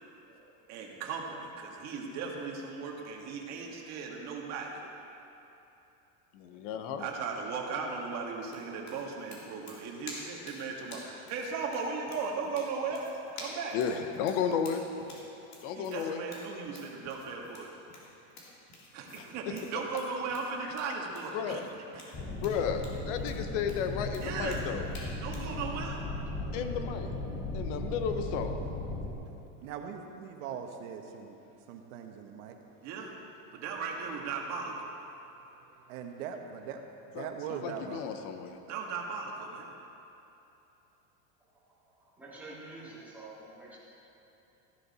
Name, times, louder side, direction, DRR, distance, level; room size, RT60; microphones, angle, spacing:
voice 1, 0.7-4.8 7.0-13.1 13.4-13.8 15.7-17.7 18.9-21.6 21.9-22.1 24.2-24.6 25.2-26.0 32.8-33.1 33.5-34.9 38.7-39.7, right 5 dB, 40° right, -1 dB, 1.8 m, -37 dB
voice 2, 1.3-1.9 6.5-6.6 41.9-43.8, right 2 dB, 5° right, -9 dB, 2.9 m, -49 dB
voice 3, 6.3-7.1 13.7-14.9 15.6-16.2 19.2-19.3 21.3-21.7 22.4-24.8 26.5-27.1 27.5-28.6 37.1-38.6, left 7 dB, 65° left, 7 dB, 1.1 m, -33 dB
sound 1, 8.4-25.5, left 2 dB, 40° left, 2.4 m, -50 dB
sound 2, 22.1-29.1, left 2 dB, 25° left, 1.2 m, -37 dB
voice 4, 29.6-31.3 31.7-32.5 35.9-36.8 37.1-38.1, right 7 dB, 70° right, 4 dB, 1.3 m, -40 dB
14.0 x 11.0 x 4.2 m, 3.0 s
supercardioid pair, 160°, 40 cm